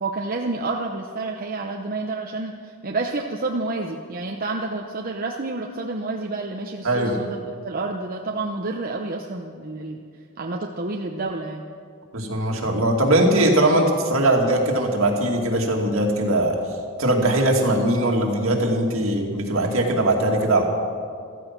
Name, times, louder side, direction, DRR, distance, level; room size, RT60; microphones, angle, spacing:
voice 1, 0.0-10.0 10.4-11.7, right 3 dB, 45° right, 1 dB, 0.8 m, -29 dB
voice 2, 6.8-7.2 12.1-16.6 17.0-20.6, right 1 dB, 65° right, 1 dB, 2.4 m, -20 dB
15.5 x 13.5 x 6.0 m, 2.3 s
head